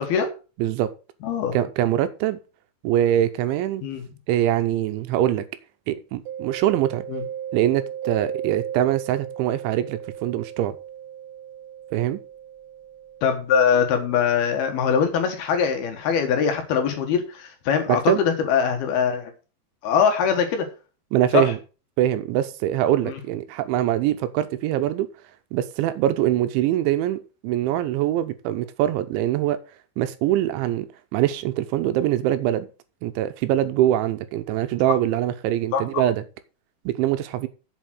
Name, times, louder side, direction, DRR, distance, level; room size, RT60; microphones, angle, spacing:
voice 1, 0.6-0.9 1.5-2.4 2.8-3.8 4.3-5.5 5.9-7.0 7.5-10.8 11.9-12.2 17.9-18.2 21.1-21.6 22.0-25.1 25.5-29.6 30.0-32.7 33.0-36.2 36.9-37.5, right 12 dB, 85° right, 3.3 m, -23 dB
voice 2, 1.2-1.6 3.8-4.0 7.1-7.2 13.2-19.3 19.8-20.7 21.3-21.5 35.7-35.8, left 7 dB, 65° left, 3.0 m, -22 dB
Mallet percussion, 6.3-15.8, right 10 dB, 65° right, 2.8 m, -36 dB
8.2 x 7.5 x 6.2 m
omnidirectional pair, 5.3 m